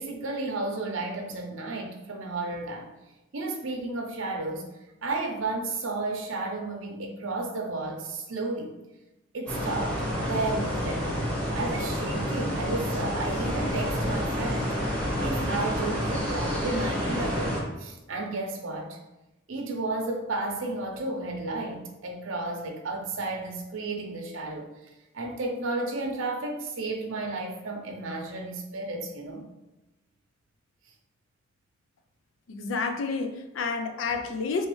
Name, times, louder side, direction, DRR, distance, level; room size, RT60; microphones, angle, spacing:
voice 1, 0.0-2.9 3.3-4.7 5.0-8.8 9.3-11.2 11.5-14.9 15.2-19.0 19.5-24.7 25.1-29.4, right 2 dB, 85° right, 0.6 m, -32 dB
sound 1, 9.5-17.6, equal, 5° left, 1.0 m, -29 dB
voice 2, 32.5-34.7, left 4 dB, 85° left, 0.4 m, -30 dB
3.3 x 3.1 x 3.1 m
head